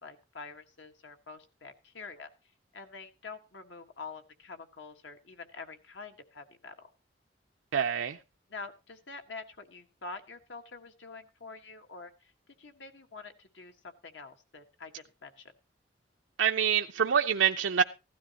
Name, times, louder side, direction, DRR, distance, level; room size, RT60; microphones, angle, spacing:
voice 1, 0.0-2.3 2.7-6.9 8.5-12.3 12.6-15.5, left 4 dB, 80° left, 1.5 m, -46 dB
voice 2, 7.7-8.2 16.4-17.8, right 8 dB, 90° right, 0.5 m, -26 dB
15.5 x 12.5 x 2.9 m
head